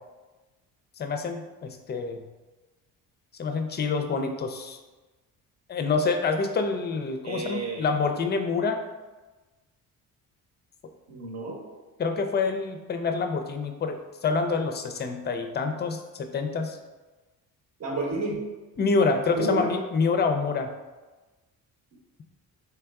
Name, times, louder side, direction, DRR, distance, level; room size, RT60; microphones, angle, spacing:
voice 1, 1.0-2.2 3.4-4.8 5.7-8.8 12.0-16.8 18.8-20.7, left 4 dB, 30° left, 6 dB, 0.4 m, -27 dB
voice 2, 7.2-7.9 11.1-11.6 17.8-18.4 19.3-19.7, right 2 dB, 45° right, -1 dB, 1.0 m, -30 dB
3.4 x 3.3 x 2.3 m, 1.2 s
supercardioid pair, 75°, 37 cm